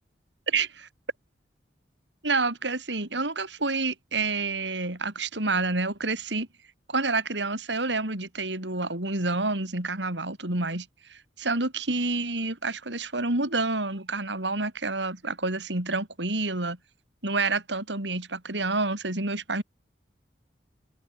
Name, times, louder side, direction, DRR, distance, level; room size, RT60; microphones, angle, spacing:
voice 1, 2.2-6.5 6.9-16.8 17.2-19.6, right 3 dB, 90° right, 4.3 m, -28 dB
open air
head